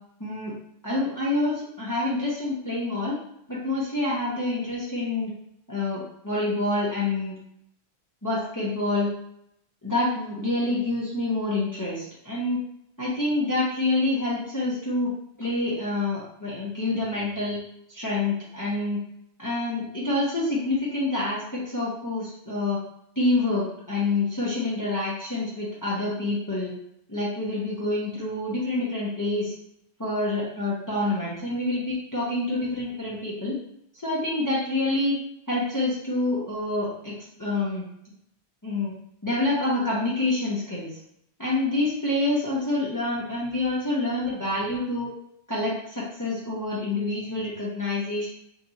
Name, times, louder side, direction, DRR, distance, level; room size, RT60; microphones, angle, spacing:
voice 1, 0.2-0.5 0.8-3.2 3.5-5.3 5.7-7.3 8.2-9.1 9.8-12.6 13.0-15.1 15.4-17.6 17.9-19.0 19.4-22.8 23.2-26.7 27.1-29.5 30.0-33.5 34.0-35.1 35.5-37.8 38.6-38.9 39.2-40.9 41.4-45.1 45.5-48.3, left 2 dB, 20° left, -7 dB, 0.9 m, -27 dB
3.7 x 2.3 x 4.0 m, 0.74 s
omnidirectional pair, 1.1 m